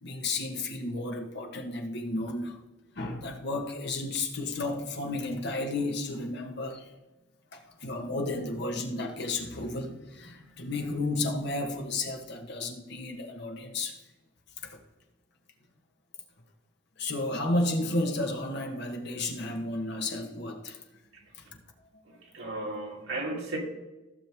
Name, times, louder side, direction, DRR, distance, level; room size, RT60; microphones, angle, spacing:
voice 1, 0.0-2.6 2.9-6.9 7.5-14.0 14.6-14.8 17.0-20.8, left 2 dB, 55° left, 1.3 m, -32 dB
voice 2, 22.3-23.6, right 2 dB, 75° right, 2.9 m, -34 dB
15.0 x 6.5 x 3.5 m
head